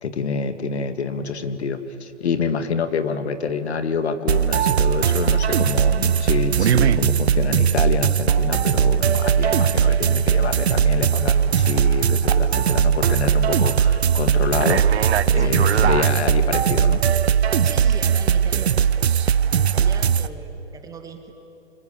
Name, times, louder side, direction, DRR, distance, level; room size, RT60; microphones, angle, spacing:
voice 1, 0.0-17.0, left 5 dB, 65° left, 8 dB, 2.2 m, -27 dB
sound 1, 4.3-20.3, right 8 dB, 65° right, 0.9 m, -19 dB
voice 2, 17.6-19.1 19.5-21.3, right 4 dB, 10° right, 5 dB, 1.6 m, -40 dB
25.0 x 23.0 x 9.0 m, 2.9 s
figure-of-eight pair, 135°, 36 cm